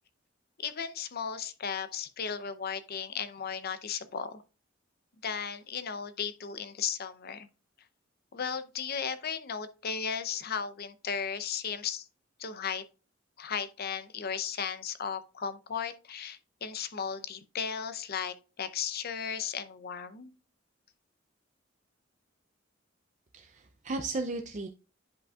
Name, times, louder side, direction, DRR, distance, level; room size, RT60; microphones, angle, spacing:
voice 1, 0.6-4.4 5.2-7.5 8.3-12.0 12.4-12.8 13.4-20.3, left 7 dB, 55° left, 0.6 m, -35 dB
voice 2, 23.3-24.7, right 3 dB, 40° right, 0.5 m, -35 dB
10.5 x 5.2 x 2.3 m
head